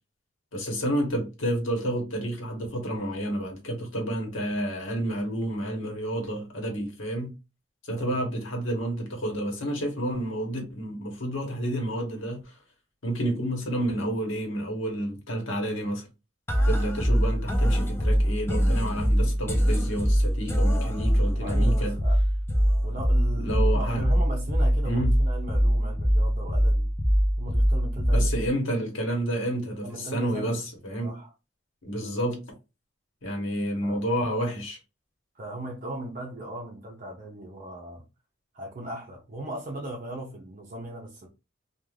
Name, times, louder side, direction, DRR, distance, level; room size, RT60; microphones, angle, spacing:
voice 1, 0.5-7.3 7.8-12.6 13.0-16.1 16.6-22.0 23.3-24.0 24.8-25.2 28.1-31.2 31.8-32.5 33.2-34.8, right 1 dB, 75° left, 1.1 m, -30 dB
sound 1, 16.5-28.5, equal, 10° left, 0.5 m, -23 dB
voice 2, 21.4-22.2 22.8-26.9 27.4-28.3 29.8-30.6 31.0-31.3 33.8-34.0 35.3-38.0 38.5-41.3, right 1 dB, 45° right, 0.5 m, -38 dB
2.4 x 2.3 x 3.1 m
head